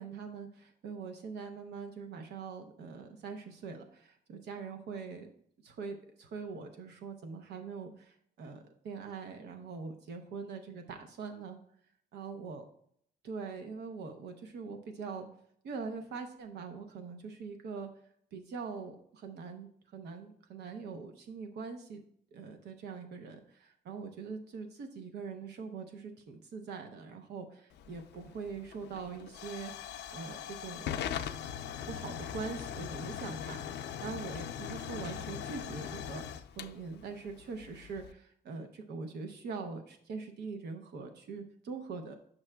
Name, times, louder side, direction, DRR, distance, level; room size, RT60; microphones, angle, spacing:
voice 1, 0.0-5.3 5.6-11.6 12.1-12.6 13.2-15.3 15.6-17.9 18.3-22.0 22.3-29.7 30.1-31.0 31.8-33.6 34.0-42.2, right 5 dB, 80° right, 5 dB, 0.7 m, -43 dB
Hiss / Fire / Tick, 27.7-38.1, left 9 dB, 85° left, 0.4 m, -41 dB
8.5 x 6.0 x 2.2 m, 0.67 s
cardioid pair, 145°, 17 cm